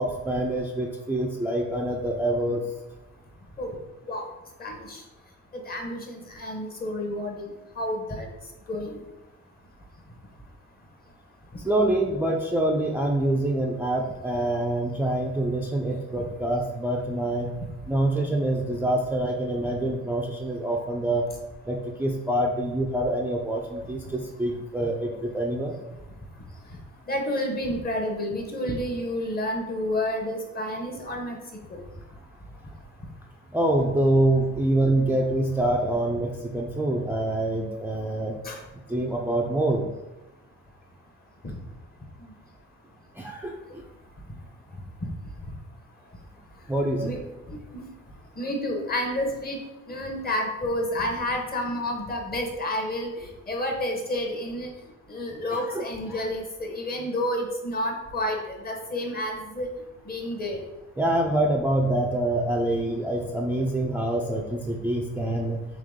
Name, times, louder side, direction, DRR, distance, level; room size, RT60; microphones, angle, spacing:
voice 1, 0.0-2.7 11.6-17.6 17.9-21.3 21.6-25.8 33.5-38.4 38.9-39.9 43.1-43.9 46.7-47.1 55.5-56.2 61.0-65.7, right 1 dB, 5° right, -1 dB, 0.4 m, -26 dB
voice 2, 4.6-5.0 5.5-7.5 7.8-8.3 8.7-9.0 27.1-31.4 38.4-38.6 41.4-41.6 47.0-47.2 47.5-47.8 48.4-49.6 49.9-53.1 53.5-54.7 55.1-59.7 60.1-60.6, left 1 dB, 30° left, 1 dB, 0.9 m, -30 dB
3.8 x 3.0 x 3.5 m, 1.0 s
cardioid pair, 90°, 30 cm